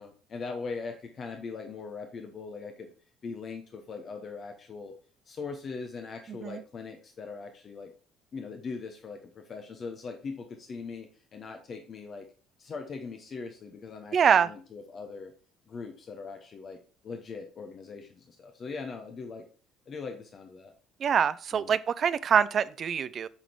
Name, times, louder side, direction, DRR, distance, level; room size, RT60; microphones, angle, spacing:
voice 1, 0.0-2.9 3.2-4.9 5.3-7.9 8.3-12.2 12.6-15.3 15.7-16.8 17.0-19.4 19.9-20.7 21.5-21.8, left 4 dB, 40° left, 1.0 m, -40 dB
voice 2, 6.3-6.6 14.1-14.5 21.0-23.3, right 7 dB, 45° right, 0.4 m, -25 dB
7.9 x 3.9 x 4.6 m
figure-of-eight pair, 55°, 0 cm